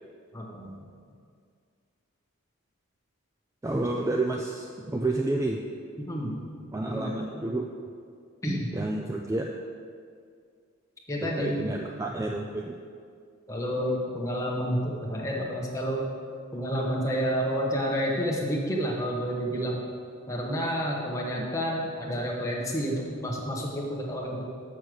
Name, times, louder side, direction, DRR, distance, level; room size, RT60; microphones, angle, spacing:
voice 1, 0.3-0.7 3.9-4.0 6.0-6.4 6.8-7.1 8.4-8.7 11.1-11.6 13.5-16.0 16.5-19.8 20.3-24.4, equal, 15° left, -2 dB, 1.2 m, -29 dB
voice 2, 3.6-5.6 6.7-7.7 8.7-9.5 11.2-12.7 21.4-21.5, right 2 dB, 15° right, 1 dB, 0.3 m, -30 dB
6.9 x 6.4 x 6.2 m, 2.2 s
head